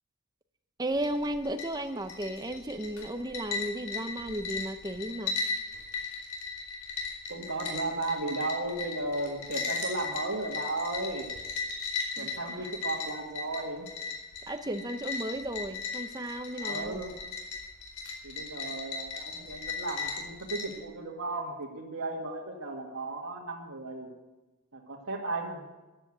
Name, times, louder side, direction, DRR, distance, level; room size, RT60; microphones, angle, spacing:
voice 1, 0.8-5.3 12.2-12.5 14.5-17.0, right 1 dB, 15° right, 8 dB, 0.8 m, -34 dB
sound 1, 0.9-20.8, left 4 dB, 85° left, 4.5 m, -37 dB
voice 2, 7.3-11.3 12.2-13.9 16.5-17.2 18.2-24.1 24.7-25.6, right 2 dB, 80° right, -4 dB, 2.1 m, -35 dB
14.5 x 10.5 x 7.4 m, 1.1 s
head